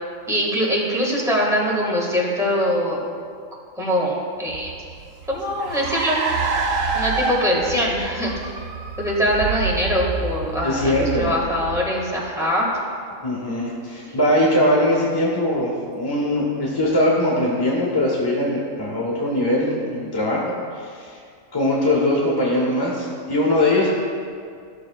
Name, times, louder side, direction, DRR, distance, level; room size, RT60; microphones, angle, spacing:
voice 1, 0.3-3.2 3.8-4.7 5.3-6.6 6.9-8.3 9.0-12.7 14.1-14.2, equal, ahead, -5 dB, 1.6 m, -23 dB
Car, 4.5-12.3, right 4 dB, 75° right, 1.2 m, -27 dB
voice 2, 10.6-11.3 13.2-20.4 20.7-21.2 21.5-23.9, left 1 dB, 20° left, -3 dB, 1.0 m, -21 dB
14.5 x 6.6 x 2.3 m, 2.2 s
omnidirectional pair, 1.4 m